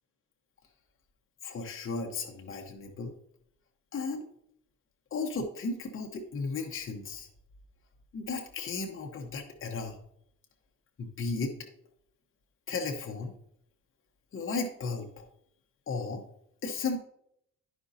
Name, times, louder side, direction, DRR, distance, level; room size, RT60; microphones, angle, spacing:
voice 1, 1.4-3.1 3.9-4.2 5.1-7.3 8.1-10.0 11.0-11.5 12.7-13.3 14.3-15.3 15.9-16.2 16.6-17.0, left 4 dB, 45° left, 2 dB, 1.1 m, -35 dB
11.0 x 5.2 x 2.8 m, 0.72 s
cardioid pair, 90°, 30 cm